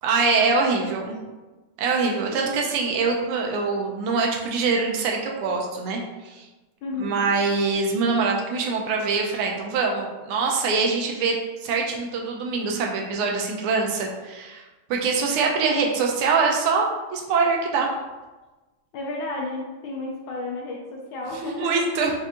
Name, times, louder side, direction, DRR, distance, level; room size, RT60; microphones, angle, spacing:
voice 1, 0.0-1.2 1.8-6.5 7.0-14.6 14.9-17.9 21.4-22.1, right 4 dB, 85° right, 0 dB, 1.6 m, -24 dB
voice 2, 2.3-2.6 6.8-7.3 18.9-22.0, left 2 dB, 75° left, -1 dB, 1.2 m, -32 dB
4.7 x 2.5 x 2.7 m, 1.2 s
omnidirectional pair, 2.4 m